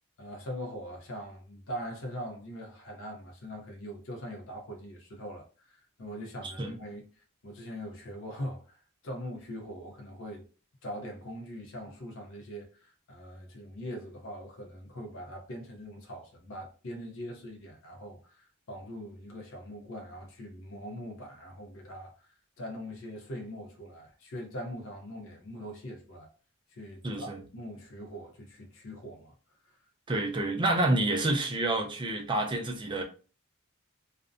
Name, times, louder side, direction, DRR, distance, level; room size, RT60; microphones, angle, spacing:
voice 1, 0.2-7.1 7.4-8.8 9.0-10.5 10.8-18.2 18.7-22.1 22.6-26.3 26.7-29.3, equal, 65° left, 0.5 m, -42 dB
voice 2, 27.0-27.4 30.1-33.0, right 2 dB, 20° right, 0.4 m, -28 dB
2.5 x 2.1 x 2.4 m
head